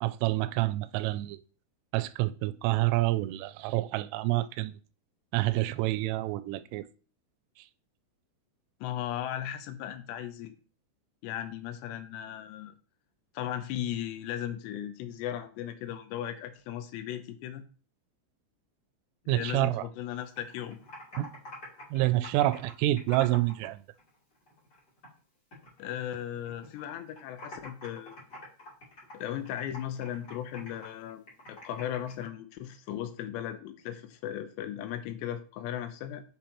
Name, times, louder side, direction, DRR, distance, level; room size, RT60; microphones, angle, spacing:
voice 1, 0.0-1.4 1.9-4.7 5.3-6.9 19.3-19.9 21.2-21.3 21.9-23.8, right 17 dB, 90° right, 3.1 m, -28 dB
voice 2, 8.8-10.5 11.2-12.8 13.3-17.6 19.3-20.8 25.8-28.2 29.1-31.2 31.5-36.2, left 11 dB, 75° left, 2.7 m, -37 dB
Computer keyboard, 20.1-23.7 24.0-25.2 25.5-26.8 27.1-32.3, left 1 dB, 25° left, 2.7 m, -47 dB
7.5 x 7.1 x 3.0 m
omnidirectional pair, 5.6 m